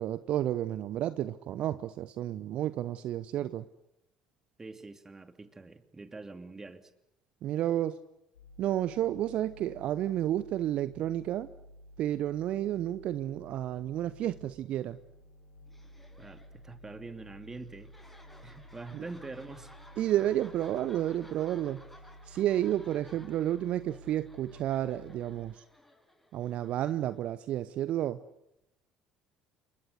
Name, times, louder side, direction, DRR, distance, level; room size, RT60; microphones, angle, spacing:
voice 1, 0.0-3.6 7.4-8.0 8.6-11.5 12.0-15.0 18.9-19.0 20.0-21.8 22.3-25.6 26.3-28.2, right 12 dB, 55° right, 15 dB, 0.9 m, -31 dB
voice 2, 4.6-6.9 16.2-17.9 18.4-19.7, right 3 dB, 20° right, 9 dB, 2.7 m, -45 dB
sound 1, 8.3-14.5 14.8-25.4, equal, 85° left, 5.8 m, -53 dB
sound 2, 15.7-27.4, left 1 dB, 5° left, 5.5 m, -57 dB
28.5 x 23.5 x 6.6 m, 0.84 s
figure-of-eight pair, 55°, 2 cm